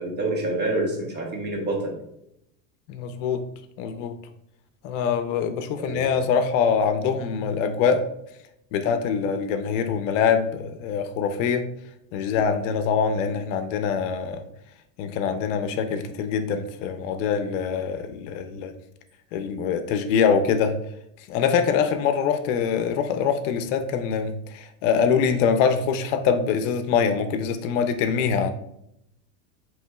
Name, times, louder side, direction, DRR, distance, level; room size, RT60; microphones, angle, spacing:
voice 1, 0.0-1.9 5.8-6.1, right 2 dB, 25° right, 0 dB, 1.1 m, -27 dB
voice 2, 2.9-3.4 3.8-4.1 4.8-8.0 8.7-11.6 12.1-14.4 15.0-18.7 19.3-20.8 21.3-28.5, left 6 dB, 70° left, 9 dB, 0.6 m, -24 dB
7.7 x 3.1 x 2.3 m, 0.78 s
supercardioid pair, 145°, 40 cm